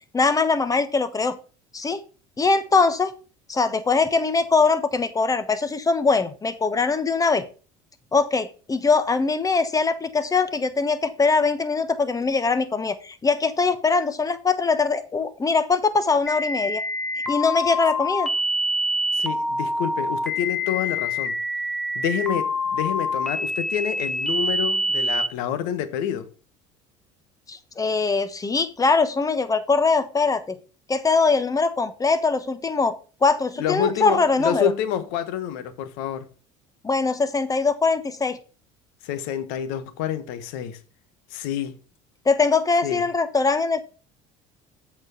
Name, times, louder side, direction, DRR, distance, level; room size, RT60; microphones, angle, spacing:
voice 1, 0.1-1.4 1.7-2.0 2.4-3.1 3.5-7.5 8.1-16.8 17.3-18.3 27.5-30.6 30.9-32.9 33.2-34.7 36.8-38.4 42.2-43.8, left 4 dB, 20° left, 1.0 m, -22 dB
sound 1, 16.3-25.3, left 1 dB, 5° left, 1.4 m, -26 dB
voice 2, 19.1-21.4 21.9-26.3 33.6-36.3 39.0-40.8 41.3-41.8 42.8-43.0, left 9 dB, 75° left, 1.1 m, -28 dB
7.8 x 4.4 x 5.5 m
supercardioid pair, 90°, 16 cm